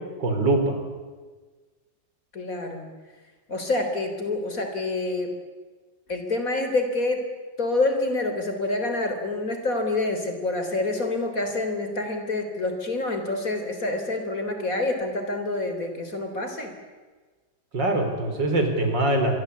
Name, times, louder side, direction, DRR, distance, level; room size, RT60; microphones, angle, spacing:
voice 1, 0.2-0.8 17.7-19.3, right 2 dB, 75° right, 6 dB, 4.6 m, -23 dB
voice 2, 2.3-2.9 3.5-5.3 6.1-7.3 7.6-16.7, left 2 dB, 45° left, 6 dB, 3.9 m, -27 dB
25.5 x 22.5 x 8.4 m, 1.4 s
omnidirectional pair, 2.0 m